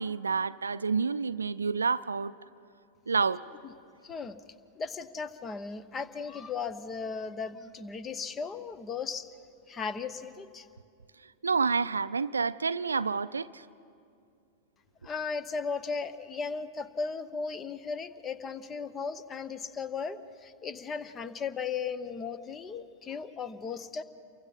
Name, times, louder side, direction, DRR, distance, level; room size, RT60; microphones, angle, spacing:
voice 1, 0.0-2.3 3.1-3.5 11.4-13.6, right 5 dB, 75° right, 17 dB, 0.4 m, -29 dB
voice 2, 4.0-4.4 4.8-9.3 9.7-10.7 15.0-24.0, left 5 dB, 25° left, 15 dB, 0.9 m, -36 dB
29.0 x 23.5 x 4.1 m, 2.4 s
figure-of-eight pair, 90°, 0 cm